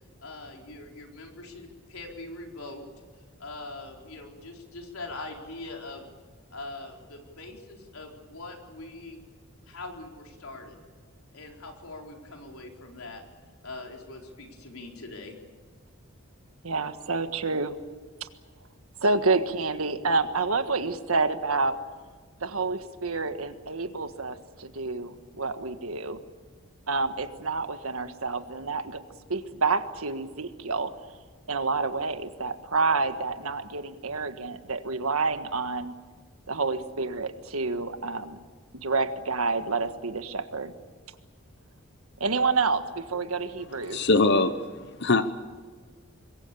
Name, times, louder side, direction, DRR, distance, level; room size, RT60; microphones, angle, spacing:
voice 1, 0.2-2.9 3.4-6.1 6.5-9.2 9.7-10.8 11.3-13.2 13.6-15.4, left 2 dB, 90° left, 1 dB, 4.3 m, -42 dB
voice 2, 16.6-17.7 18.2-18.3 19.0-21.8 22.4-26.2 26.9-29.0 29.3-30.9 31.5-35.9 36.5-38.4 38.8-40.7 42.2-44.0, right 3 dB, 90° right, 9 dB, 1.6 m, -28 dB
voice 3, 43.9-44.5 45.0-45.3, left 3 dB, 55° left, 11 dB, 0.9 m, -21 dB
26.0 x 22.0 x 7.0 m, 1.5 s
head